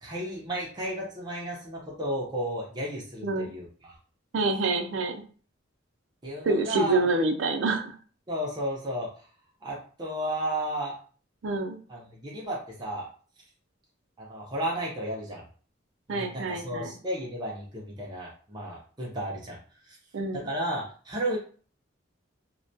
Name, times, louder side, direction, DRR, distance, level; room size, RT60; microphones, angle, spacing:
voice 1, 0.0-3.9 6.2-7.0 8.3-9.1 9.6-11.0 11.9-13.1 14.2-15.4 16.1-19.6 19.9-20.0 20.3-21.4, right 1 dB, 20° right, -4 dB, 0.5 m, -33 dB
voice 2, 4.3-5.2 6.5-8.0 11.4-11.8 16.1-16.9 20.1-20.5, right 3 dB, 75° right, 6 dB, 0.4 m, -27 dB
2.2 x 2.1 x 2.6 m, 0.41 s
head